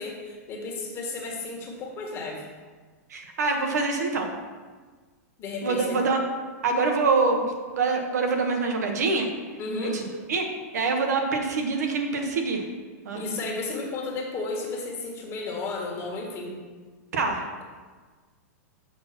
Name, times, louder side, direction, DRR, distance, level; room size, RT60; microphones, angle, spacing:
voice 1, 0.0-2.5 5.4-6.0 9.6-10.0 13.1-16.6, left 3 dB, 30° left, -1 dB, 1.5 m, -33 dB
voice 2, 3.1-4.3 5.6-6.2 6.6-7.4 7.7-9.3 9.8-10.0 10.3-10.5 10.7-12.6 13.0-13.2 17.1-17.4, right 4 dB, 80° right, 3 dB, 1.2 m, -25 dB
6.6 x 4.2 x 5.8 m, 1.4 s
hypercardioid pair, 135°, 9 cm